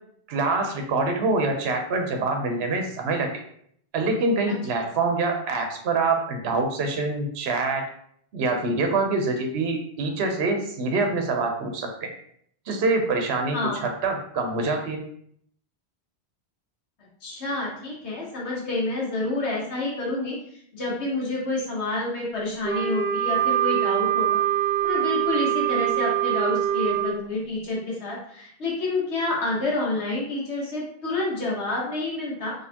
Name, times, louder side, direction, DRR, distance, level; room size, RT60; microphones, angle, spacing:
voice 1, 0.3-3.4 3.9-7.9 8.3-12.1 12.7-15.0, right 3 dB, 70° right, 3 dB, 0.9 m, -25 dB
voice 2, 17.2-20.4 20.7-24.4 24.8-32.5, left 2 dB, 90° left, -4 dB, 1.4 m, -28 dB
Wind instrument woodwind instrument, 22.6-27.1, right 12 dB, 30° right, 1.1 m, -24 dB
4.2 x 3.2 x 2.8 m, 0.66 s
omnidirectional pair, 1.1 m